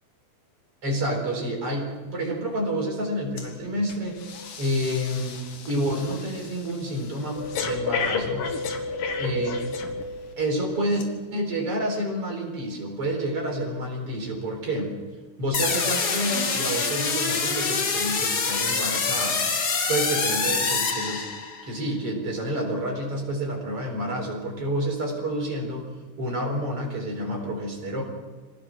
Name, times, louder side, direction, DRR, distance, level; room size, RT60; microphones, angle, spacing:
voice 1, 0.8-4.2 4.6-5.4 5.7-8.5 9.2-9.6 10.4-14.9 15.4-19.5 19.9-21.3 21.7-25.9 26.2-28.0, right 1 dB, 45° right, 0 dB, 5.1 m, -29 dB
Breathing, 3.4-3.6 3.9-10.3 10.9-11.0, left 4 dB, 85° left, 3.6 m, -32 dB
sound 1, 15.5-21.7, left 4 dB, 40° left, 1.6 m, -25 dB
25.5 x 18.0 x 6.2 m, 1.4 s
omnidirectional pair, 3.7 m